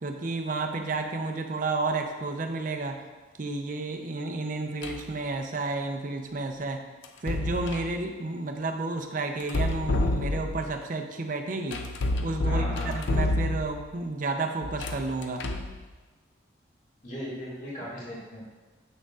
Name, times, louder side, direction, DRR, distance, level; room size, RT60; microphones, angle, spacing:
voice 1, 0.0-3.0 3.4-6.9 7.2-11.8 12.2-15.5, right 3 dB, 45° right, 5 dB, 0.5 m, -31 dB
sound 1, 4.8-5.1 7.0-7.9 9.4-10.7 11.7-13.9 14.6-15.8, left 1 dB, 75° left, 0.5 m, -29 dB
voice 2, 12.4-12.9 17.0-18.4, equal, 40° left, -7 dB, 1.8 m, -37 dB
7.5 x 6.3 x 2.4 m, 1.3 s
head